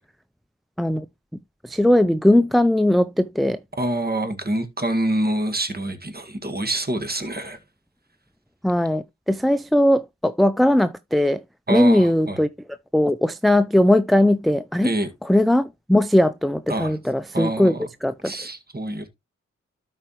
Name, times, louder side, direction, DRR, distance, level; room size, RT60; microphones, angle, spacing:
voice 1, 1.6-3.6 8.6-11.4 11.7-12.5 12.9-14.9 15.3-17.7 18.0-18.3, left 1 dB, ahead, 0.5 m, -19 dB
voice 2, 3.8-7.6 11.7-12.4 14.8-15.1 16.7-17.0 17.3-17.9 18.2-19.1, right 1 dB, 30° right, 2.0 m, -26 dB
12.5 x 4.9 x 3.1 m
supercardioid pair, 40°, 30 cm